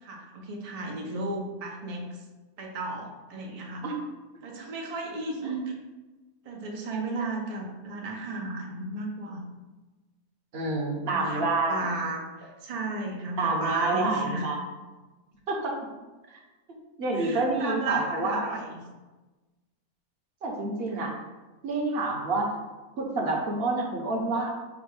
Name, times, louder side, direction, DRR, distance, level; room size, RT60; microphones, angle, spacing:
voice 1, 0.0-2.1 2.6-3.8 4.4-5.7 6.5-9.4 11.1-14.4 17.1-18.8 20.9-21.1, right 2 dB, 70° right, 0 dB, 0.3 m, -34 dB
voice 2, 10.5-11.9 13.4-14.6 15.5-15.8 16.3-16.4 17.0-18.4 20.4-21.1 21.6-22.5 23.0-24.5, right 2 dB, 50° right, 0 dB, 0.8 m, -28 dB
5.0 x 2.2 x 4.7 m, 1.2 s
omnidirectional pair, 1.6 m